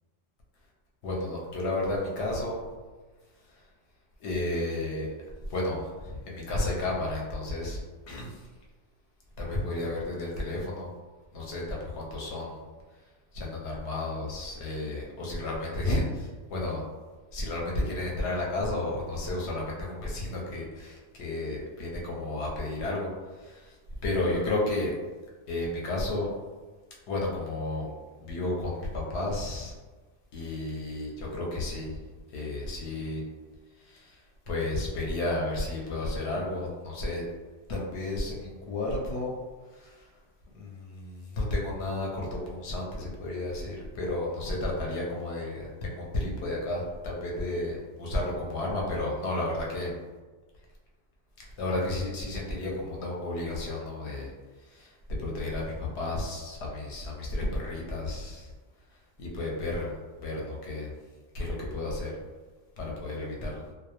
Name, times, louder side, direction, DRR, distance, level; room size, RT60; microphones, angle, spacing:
voice 1, 1.0-2.6 4.2-5.1 5.5-7.8 8.1-8.4 9.4-10.9 11.3-12.6 13.3-16.8 17.3-23.1 23.4-23.7 24.0-24.9 25.5-26.3 27.1-27.9 28.2-29.7 30.3-32.0 32.3-33.2 33.8-34.2 34.5-37.2 37.7-39.4 39.7-40.0 40.5-49.9 51.6-54.3 54.7-54.9 55.2-58.5 59.2-59.9 60.2-60.9 61.3-62.1 62.8-63.6, left 2 dB, 70° left, -3 dB, 0.8 m, -32 dB
2.2 x 2.0 x 2.8 m, 1.3 s
omnidirectional pair, 1.2 m